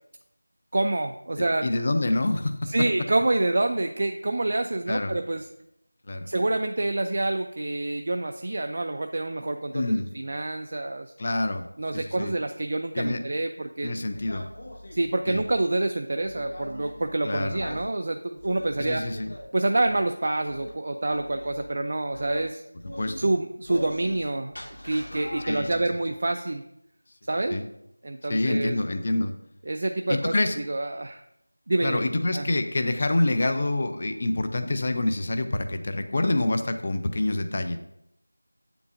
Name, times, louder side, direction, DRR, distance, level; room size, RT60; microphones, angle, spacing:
voice 1, 0.7-1.6 2.7-5.5 6.3-9.8 10.1-11.1 11.8-13.9 14.9-19.0 19.5-22.6 23.2-24.5 24.8-26.6 27.3-27.6 28.0-28.8 29.7-31.2 31.7-32.0 32.3-32.5, right 2 dB, 40° right, 6 dB, 0.3 m, -27 dB
voice 2, 1.4-2.5 4.9-5.2 6.1-6.3 9.7-10.1 11.2-11.7 11.9-12.3 12.9-13.2 13.8-14.5 15.3-15.4 17.2-17.6 18.8-19.3 23.0-23.3 25.4-25.8 27.5-27.6 28.3-29.3 30.1-30.6 31.8-37.8, left 2 dB, 30° left, 8 dB, 0.5 m, -26 dB
sound 1, 14.1-15.6 16.2-17.1 17.6-17.9 18.4-19.5 19.8-20.1 20.5-20.7 21.1-21.7 22.1-22.5 22.8-23.2 23.6-24.3 24.5-25.8, left 1 dB, 60° left, 1.8 m, -40 dB
8.1 x 6.9 x 2.5 m, 0.81 s
figure-of-eight pair, 175°, 0 cm